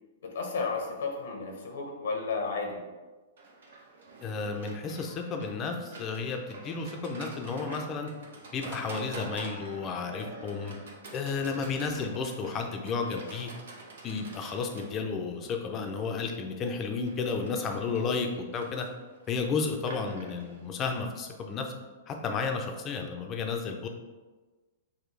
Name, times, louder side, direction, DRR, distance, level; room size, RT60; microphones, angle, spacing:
voice 1, 0.2-2.8, left 4 dB, 70° left, 1 dB, 0.9 m, -33 dB
Livestock farm animals working animals, 3.4-21.4, right 3 dB, 70° right, 0.8 m, -47 dB
voice 2, 4.2-8.1 8.5-10.8 11.1-13.5 14.0-18.9 19.3-21.7 22.1-23.9, left 4 dB, 30° left, 4 dB, 0.6 m, -32 dB
6.1 x 2.3 x 3.3 m, 1.3 s
hypercardioid pair, 115°, 0 cm